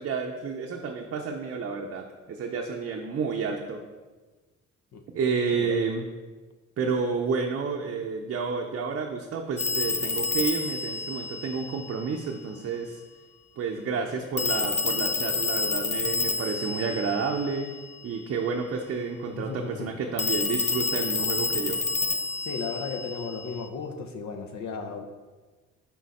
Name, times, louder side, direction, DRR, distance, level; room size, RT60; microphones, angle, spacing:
voice 1, 0.0-3.8 5.1-6.0 6.8-13.0 13.6-17.7 18.0-21.8, right 5 dB, 50° right, 2 dB, 0.6 m, -30 dB
Telephone, 9.6-12.2 14.4-18.0 20.2-23.7, left 4 dB, 20° left, 0.5 m, -29 dB
voice 2, 19.3-19.9 22.4-25.0, left 5 dB, 65° left, 7 dB, 0.8 m, -35 dB
6.3 x 3.9 x 4.2 m, 1.3 s
cardioid pair, 90°, 30 cm